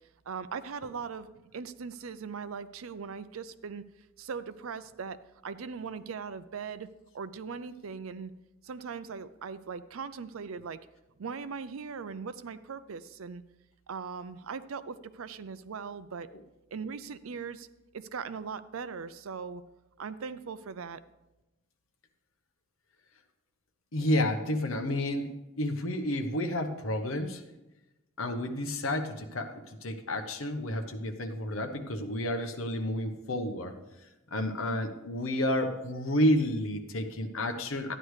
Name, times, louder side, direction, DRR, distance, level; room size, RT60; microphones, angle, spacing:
voice 1, 0.3-3.8 4.2-5.2 5.4-8.3 8.6-10.8 11.2-13.4 13.9-16.3 16.7-17.7 17.9-19.6 20.0-21.0, right 5 dB, 80° right, 14 dB, 0.5 m, -39 dB
voice 2, 23.9-27.4 28.2-33.7 34.3-38.0, left 1 dB, 75° left, 6 dB, 1.0 m, -30 dB
12.5 x 9.9 x 3.2 m, 1.0 s
head